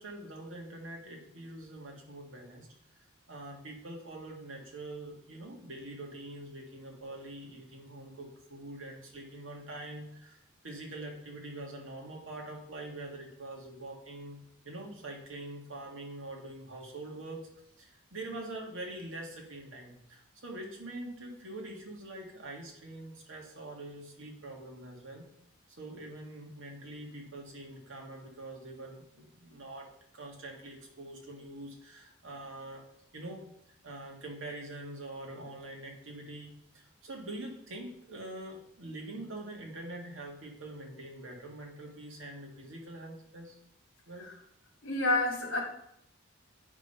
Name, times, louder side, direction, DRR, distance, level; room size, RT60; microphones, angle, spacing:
voice 1, 0.0-2.7 3.3-14.4 14.6-17.4 17.8-25.3 25.8-32.8 33.1-33.4 33.8-43.6 44.1-44.3, right 1 dB, 65° right, 0 dB, 1.9 m, -44 dB
voice 2, 44.8-45.6, left 2 dB, 65° left, 0 dB, 2.3 m, -29 dB
8.1 x 5.1 x 5.6 m, 0.76 s
head